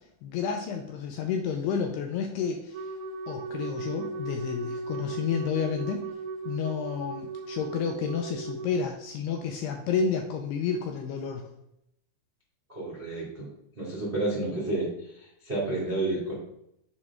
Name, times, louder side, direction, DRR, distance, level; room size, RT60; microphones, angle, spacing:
voice 1, 0.2-2.9 3.3-6.1 6.5-11.5, left 6 dB, 85° left, 3 dB, 2.3 m, -30 dB
Wind instrument woodwind instrument, 2.7-8.8, right 4 dB, 85° right, 2.9 m, -37 dB
voice 2, 12.7-13.5 13.7-16.3, right 2 dB, 35° right, -6 dB, 0.8 m, -30 dB
7.0 x 5.1 x 3.6 m, 0.79 s
omnidirectional pair, 5.1 m